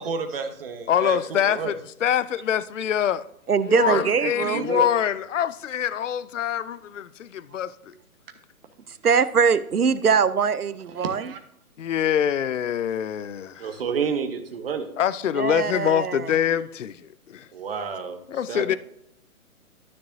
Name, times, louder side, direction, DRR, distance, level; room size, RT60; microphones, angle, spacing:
voice 1, 0.0-1.2 1.4-1.7 3.7-4.8 11.0-11.4 13.6-14.9 17.5-18.2 18.5-18.8, right 6 dB, 40° right, 1.1 m, -30 dB
voice 2, 0.9-3.3 3.6-7.9 11.8-13.7 15.0-17.5 18.3-18.8, left 9 dB, 60° left, 0.5 m, -25 dB
voice 3, 3.5-4.7 9.0-11.3 15.3-16.3, right 6 dB, 85° right, 0.7 m, -22 dB
12.5 x 6.7 x 2.6 m
figure-of-eight pair, 130°, 44 cm